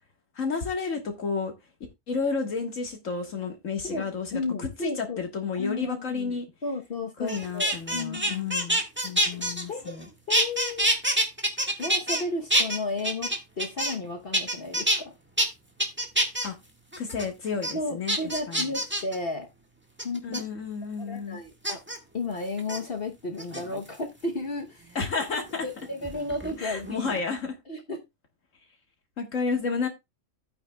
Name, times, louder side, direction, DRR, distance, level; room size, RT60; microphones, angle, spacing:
voice 1, 0.3-1.5 2.1-6.5 7.2-10.1 16.4-16.6 17.0-18.2 18.5-18.7 20.2-21.4 25.0-25.7 26.6-27.6 29.2-29.9, left 5 dB, 75° left, 2.0 m, -31 dB
voice 2, 4.3-5.3 5.6-6.4 6.6-8.5 9.7-9.9 10.3-10.9 11.8-15.1 17.7-19.5 20.0-20.4 21.1-21.8 22.1-25.0 25.6-26.9 27.7-28.0, left 2 dB, 50° left, 1.2 m, -33 dB
sound 1, 7.3-10.0 10.3-12.2 12.5-14.1 14.3-15.0 15.4-15.5 15.8-16.5 16.9-17.3 17.6-17.7 18.1-19.2 20.0-20.4 21.6-22.0 22.6-22.8 23.4-24.0 25.4-26.6 26.8-27.2, right 1 dB, 10° right, 1.6 m, -26 dB
12.0 x 8.9 x 2.3 m
omnidirectional pair, 1.3 m